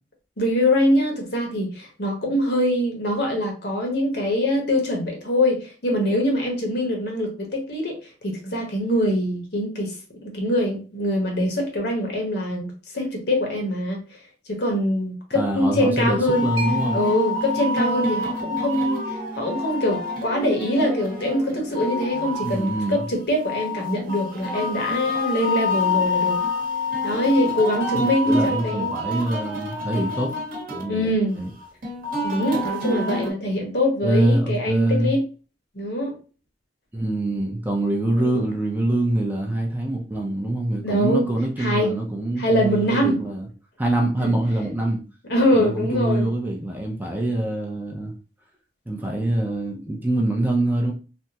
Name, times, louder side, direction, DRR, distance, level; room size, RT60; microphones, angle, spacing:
voice 1, 0.4-14.2 14.5-16.5 16.9-26.4 27.0-28.9 30.9-31.4 32.2-35.3 35.7-36.2 38.1-38.4 40.8-41.3 41.6-42.0 42.4-43.2 44.2-44.3 45.3-46.3, left 1 dB, 60° left, 0.9 m, -23 dB
voice 2, 15.3-17.0 22.4-23.0 27.9-30.3 30.7-31.5 34.0-35.1 36.9-43.5 43.8-45.0 45.5-48.1 48.9-50.9, right 1 dB, 10° right, 0.5 m, -24 dB
sound 1, 16.3-33.3, left 2 dB, 50° right, 0.9 m, -28 dB
Mallet percussion, 16.6-23.8, right 2 dB, 85° right, 0.7 m, -36 dB
3.4 x 2.0 x 2.8 m
head